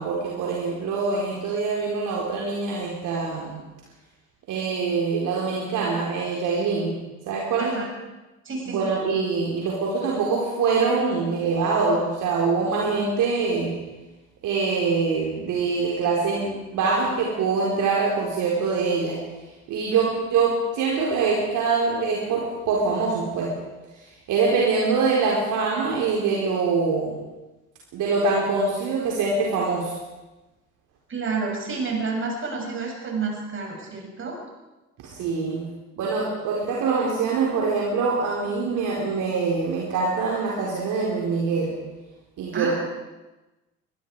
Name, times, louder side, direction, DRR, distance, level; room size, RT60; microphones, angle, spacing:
voice 1, 0.0-3.6 4.5-7.0 7.3-7.8 8.7-13.7 14.4-19.2 19.7-23.5 24.3-27.1 27.9-30.0 35.0-35.7 36.0-41.7 42.4-42.7, right 4 dB, 45° right, -3 dB, 4.5 m, -24 dB
voice 2, 8.4-8.8 31.1-34.4 42.5-42.7, right 4 dB, 30° right, 0 dB, 7.5 m, -29 dB
23.0 x 23.0 x 4.9 m, 1.1 s
figure-of-eight pair, 65°, 42 cm